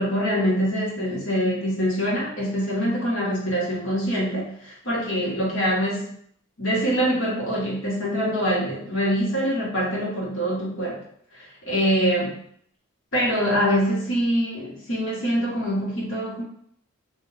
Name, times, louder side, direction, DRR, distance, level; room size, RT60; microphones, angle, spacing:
voice 1, 0.0-6.1 6.6-11.0 11.3-12.4 13.1-16.4, equal, 65° left, -5 dB, 1.3 m, -24 dB
3.5 x 2.6 x 3.3 m, 0.65 s
head